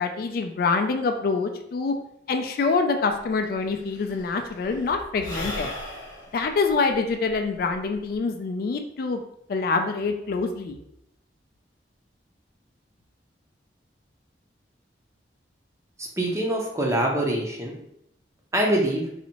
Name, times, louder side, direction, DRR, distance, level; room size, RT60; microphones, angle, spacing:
voice 1, 0.0-1.9 2.3-5.7 6.3-9.2 9.5-10.8, left 4 dB, 55° left, 5 dB, 0.3 m, -25 dB
Sigh / Breathing, 3.1-3.2 3.4-8.2, left 1 dB, 20° left, 0.8 m, -38 dB
voice 2, 16.0-17.7 18.5-19.0, right 1 dB, 15° right, -1 dB, 0.6 m, -24 dB
4.0 x 2.6 x 2.9 m, 0.78 s
head